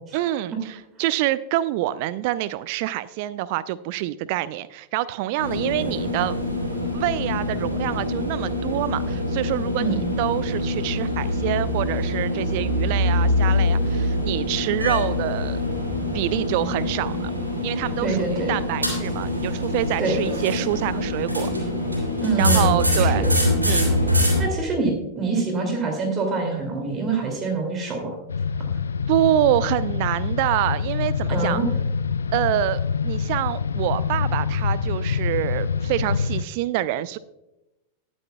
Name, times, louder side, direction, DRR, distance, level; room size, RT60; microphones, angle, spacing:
voice 1, 0.1-6.4 6.9-15.6 16.1-17.3 17.6-21.5 22.4-23.2 23.6-24.0 29.1-31.6 32.3-37.2, right 14 dB, 45° right, 17 dB, 0.3 m, -26 dB
sound 1, 5.4-24.4, left 1 dB, 85° right, 3.0 m, -24 dB
voice 2, 18.0-18.6 20.0-20.1 22.2-23.3 24.4-28.1 31.3-31.7, right 4 dB, 25° right, 3 dB, 2.5 m, -25 dB
sound 2, 28.3-36.4, left 6 dB, 70° left, 0.4 m, -26 dB
20.0 x 8.5 x 2.3 m, 0.95 s
figure-of-eight pair, 90°, 0 cm